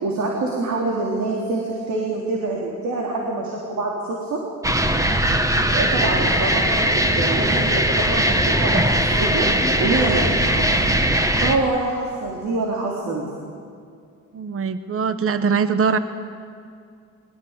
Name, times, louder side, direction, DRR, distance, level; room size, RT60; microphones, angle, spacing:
voice 1, 0.0-4.4 5.7-9.5 9.8-10.9 11.4-13.2, right 2 dB, 70° right, -1 dB, 3.8 m, -25 dB
sound 1, 4.6-11.6, right 1 dB, 10° right, 1.7 m, -20 dB
voice 2, 14.3-16.0, right 6 dB, 45° right, 11 dB, 1.2 m, -22 dB
22.0 x 19.5 x 8.4 m, 2.3 s
cardioid pair, 90°, 30 cm